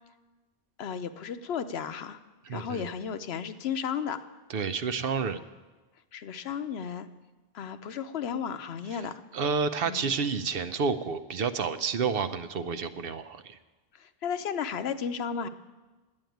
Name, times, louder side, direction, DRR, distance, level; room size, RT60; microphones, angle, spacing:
voice 1, 0.8-2.2 2.5-4.2 6.1-7.1 7.5-9.2 9.9-10.1 14.0-15.5, left 7 dB, 85° left, 10 dB, 1.0 m, -34 dB
voice 2, 2.5-2.9 4.5-5.4 9.3-13.6, right 5 dB, 70° right, 11 dB, 0.9 m, -30 dB
11.0 x 8.9 x 9.2 m, 1.2 s
omnidirectional pair, 1.0 m